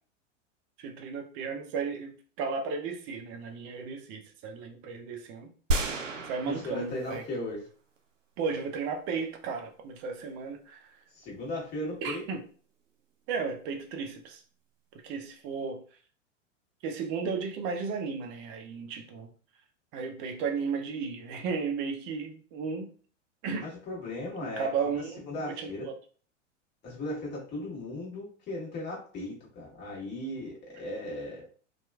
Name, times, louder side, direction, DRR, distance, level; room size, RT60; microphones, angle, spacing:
voice 1, 0.8-5.5 6.2-7.2 8.4-11.0 12.0-12.4 13.3-14.4 15.0-15.8 16.8-19.3 19.9-22.9 23.4-23.7 24.4-25.2 25.6-25.9, right 5 dB, 30° right, 3 dB, 0.5 m, -34 dB
sound 1, 5.7-7.5 8.0-8.1, right 2 dB, 85° right, 0.5 m, -32 dB
voice 2, 6.4-7.7 11.1-12.2 23.6-25.9 26.8-31.4, left 1 dB, 30° left, -3 dB, 1.3 m, -37 dB
2.8 x 2.3 x 2.3 m, 0.42 s
figure-of-eight pair, 95°, 37 cm